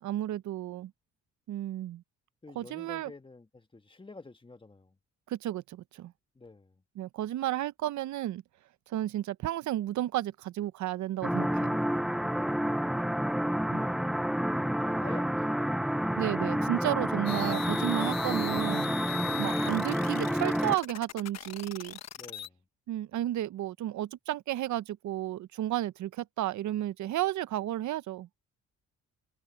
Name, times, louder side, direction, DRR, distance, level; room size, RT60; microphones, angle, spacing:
voice 1, 0.0-0.9 1.5-2.0 2.6-3.1 5.3-6.1 7.0-8.4 8.9-11.8 16.2-18.9 19.4-22.0 22.9-28.3, right 13 dB, 70° right, 0.8 m, -32 dB
voice 2, 2.4-5.0 6.3-6.8 12.3-12.9 14.8-15.9 19.2-19.5 22.2-22.6, left 3 dB, 15° left, 1.6 m, -48 dB
sound 1, 11.2-20.8, equal, ahead, 0.4 m, -29 dB
sound 2, 17.3-22.5, left 10 dB, 60° left, 1.3 m, -40 dB
cardioid pair, 90°, 30 cm